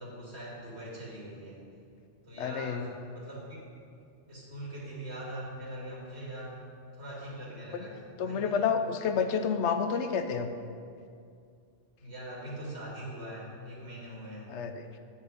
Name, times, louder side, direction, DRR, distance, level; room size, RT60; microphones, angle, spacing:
voice 1, 0.0-1.7 2.2-3.6 4.3-6.6 6.9-8.0 8.2-8.9 12.0-14.5, right 1 dB, 70° right, -5 dB, 2.3 m, -42 dB
voice 2, 2.4-2.9 7.7-7.9 8.2-10.5 14.5-14.9, left 6 dB, 90° left, 8 dB, 0.9 m, -29 dB
8.2 x 6.0 x 5.0 m, 2.3 s
omnidirectional pair, 1.1 m